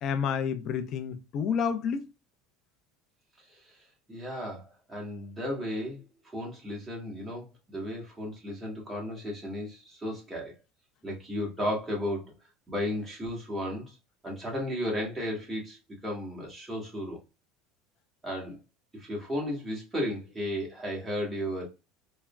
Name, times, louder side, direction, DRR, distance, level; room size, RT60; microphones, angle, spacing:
voice 1, 0.0-2.0, left 7 dB, 50° left, 0.5 m, -29 dB
voice 2, 4.1-6.0 6.3-10.5 11.0-12.3 12.7-13.9 14.2-15.8 16.0-17.2 18.2-18.6 18.9-21.6, equal, 10° right, 1.4 m, -34 dB
3.5 x 2.1 x 2.2 m
supercardioid pair, 115°, 0 cm